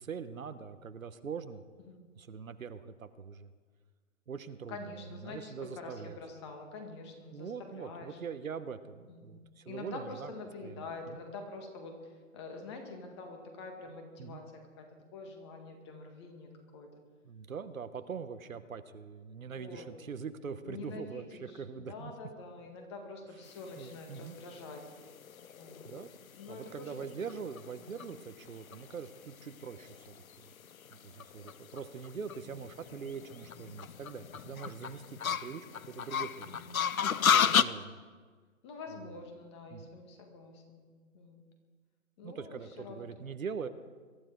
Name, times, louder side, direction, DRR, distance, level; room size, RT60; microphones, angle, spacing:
voice 1, 0.0-1.6 2.2-3.5 4.3-4.9 5.2-6.1 7.3-10.3 10.6-10.8 11.1-11.2 14.2-14.4 17.2-22.1 23.8-24.3 25.8-26.1 26.5-30.5 31.0-36.6 37.2-38.0 39.7-39.9 42.2-43.7, right 6 dB, 75° right, 10 dB, 1.3 m, -43 dB
voice 2, 4.7-8.2 9.1-14.9 15.1-16.9 19.5-19.9 20.7-24.8 25.5-25.9 26.4-27.0 27.2-27.4 27.8-28.1 32.4-32.5 36.5-37.2 38.6-40.9 41.1-41.4 42.2-43.1, left 3 dB, 20° left, 4 dB, 1.8 m, -46 dB
sound 1, 23.7-37.6, left 8 dB, 85° left, 0.8 m, -33 dB
22.5 x 12.5 x 4.6 m, 1.5 s
hypercardioid pair, 160°, 41 cm